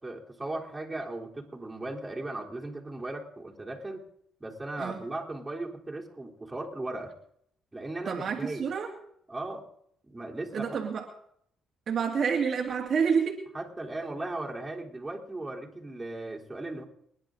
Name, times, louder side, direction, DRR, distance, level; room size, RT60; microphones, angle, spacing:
voice 1, 0.0-4.0 4.4-7.1 7.7-8.7 9.3-9.7 10.0-10.8 13.5-16.8, right 2 dB, 15° right, -1 dB, 3.6 m, -37 dB
voice 2, 8.1-8.9 10.5-11.1 11.9-13.4, right 6 dB, 55° right, 1 dB, 2.2 m, -28 dB
27.0 x 10.5 x 3.9 m, 0.69 s
cardioid pair, 90°, 0 cm